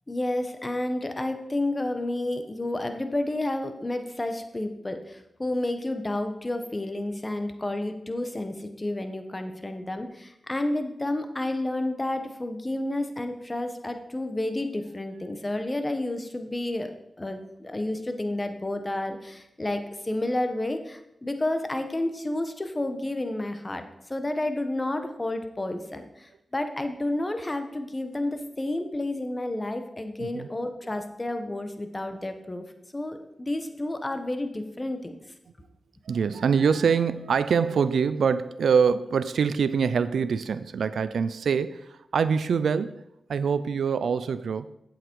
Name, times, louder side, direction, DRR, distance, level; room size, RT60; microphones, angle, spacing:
voice 1, 0.1-16.9 17.2-32.6 32.9-35.2, left 1 dB, 25° left, 7 dB, 1.1 m, -30 dB
voice 2, 30.2-30.5 36.1-43.0 43.3-44.7, right 6 dB, 90° right, 13 dB, 0.4 m, -24 dB
8.0 x 7.9 x 4.6 m, 0.84 s
cardioid pair, 60°, 0 cm